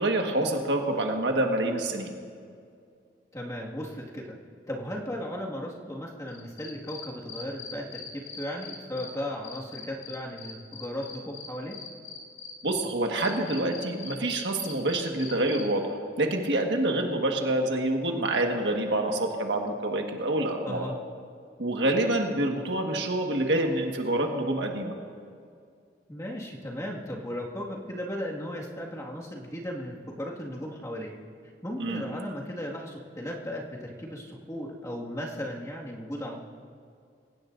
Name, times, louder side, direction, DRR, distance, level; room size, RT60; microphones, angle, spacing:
voice 1, 0.0-2.1 12.6-20.9 21.6-24.9 31.8-32.0, right 1 dB, 70° right, 2 dB, 1.6 m, -27 dB
voice 2, 3.3-4.4 4.7-11.8 20.7-20.9 26.1-31.1 31.6-36.4, equal, 20° left, -3 dB, 1.9 m, -36 dB
Cricket, 6.3-9.1 9.4-12.8 13.2-15.6, left 7 dB, 80° left, 2.6 m, -41 dB
26.5 x 16.5 x 2.6 m, 2.3 s
head